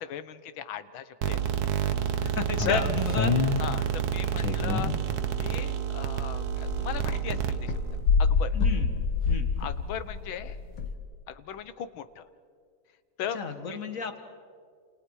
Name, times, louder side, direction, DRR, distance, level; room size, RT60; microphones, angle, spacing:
voice 1, 0.0-1.4 2.7-2.8 3.6-4.9 5.4-7.7 8.2-8.6 9.6-10.6 11.3-12.2 13.2-13.4, left 9 dB, 85° left, 13 dB, 1.7 m, -36 dB
sound 1, 1.2-8.0, right 9 dB, 60° right, 1.4 m, -29 dB
voice 2, 2.2-3.7 8.5-8.9 9.3-9.5 13.3-14.2, left 4 dB, 45° left, 7 dB, 1.9 m, -33 dB
sound 2, 2.5-5.6 5.9-10.9, left 5 dB, 70° left, 2.1 m, -28 dB
29.0 x 28.5 x 4.8 m, 2.1 s
omnidirectional pair, 2.1 m